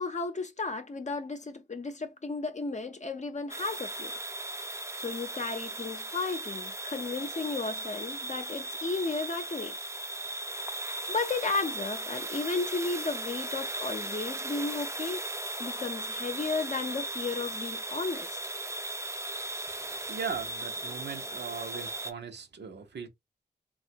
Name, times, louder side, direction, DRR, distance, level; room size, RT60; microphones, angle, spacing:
voice 1, 0.0-4.1 5.0-9.8 11.1-15.2 15.6-18.3, left 3 dB, 40° left, 0.6 m, -34 dB
sound 1, 3.5-22.1, right 2 dB, 15° right, 0.5 m, -37 dB
voice 2, 19.6-23.1, right 6 dB, 70° right, 0.8 m, -39 dB
3.2 x 2.4 x 2.7 m
cardioid pair, 45°, 18 cm